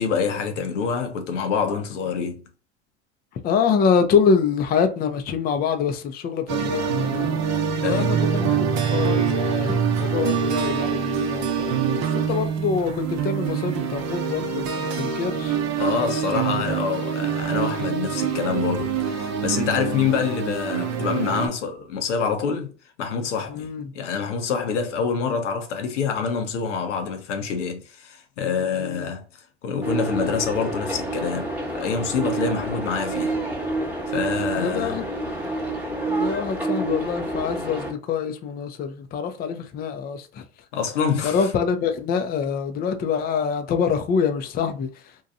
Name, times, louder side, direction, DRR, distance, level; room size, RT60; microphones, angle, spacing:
voice 1, 0.0-2.4 7.8-8.1 15.8-22.7 23.0-29.2 29.6-33.4 34.1-35.0 40.7-41.5, left 6 dB, 85° left, 0.7 m, -26 dB
voice 2, 3.4-7.4 7.8-15.6 23.5-23.9 28.8-29.1 34.5-35.0 36.1-40.4 41.2-44.9, left 6 dB, 25° left, 0.4 m, -25 dB
sound 1, 6.5-21.5, right 7 dB, 50° right, 0.7 m, -25 dB
sound 2, 29.8-37.9, right 2 dB, 5° right, 1.0 m, -28 dB
2.7 x 2.2 x 2.6 m
hypercardioid pair, 85°, 35 cm